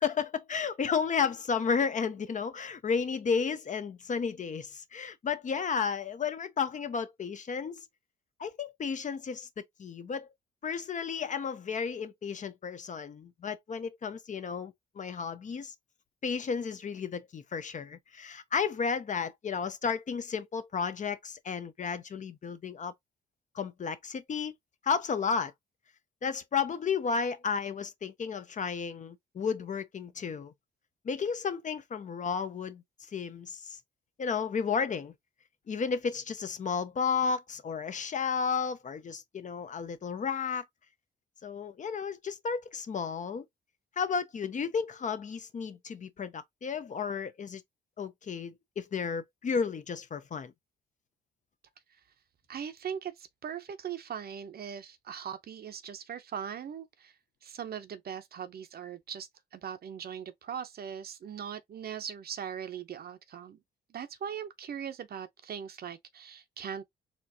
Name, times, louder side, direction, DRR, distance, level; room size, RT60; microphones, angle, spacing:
voice 1, 0.0-7.8 8.4-10.3 10.6-15.7 16.2-22.9 23.5-24.5 24.8-25.5 26.2-30.5 31.0-32.8 33.1-33.8 34.2-35.1 35.7-40.6 41.4-43.5 44.0-47.6 48.0-50.5, left 6 dB, 40° left, 0.6 m, -33 dB
voice 2, 52.5-57.1 57.4-63.6 63.9-66.8, right 8 dB, 50° right, 0.7 m, -40 dB
4.3 x 2.5 x 2.7 m
cardioid pair, 90°, 20 cm